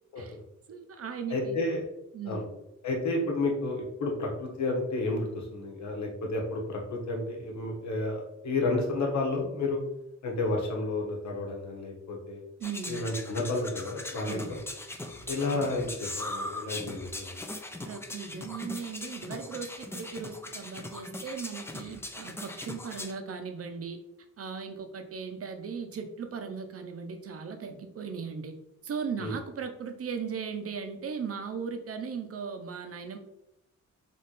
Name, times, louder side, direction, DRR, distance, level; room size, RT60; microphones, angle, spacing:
voice 1, 0.7-1.6 2.1-2.5 12.6-13.0 14.3-14.5 17.8-24.0 24.4-28.5 28.8-33.2, right 6 dB, 50° right, 7 dB, 0.7 m, -37 dB
voice 2, 1.3-1.8 2.2-2.4 2.8-9.8 10.2-12.4 12.9-14.6 15.3-17.4 29.2-29.3, left 2 dB, 65° left, 0 dB, 1.3 m, -31 dB
sound 1, 12.6-23.1, left 2 dB, 10° left, 0.4 m, -40 dB
3.7 x 3.1 x 4.0 m, 0.87 s
cardioid pair, 120°, 31 cm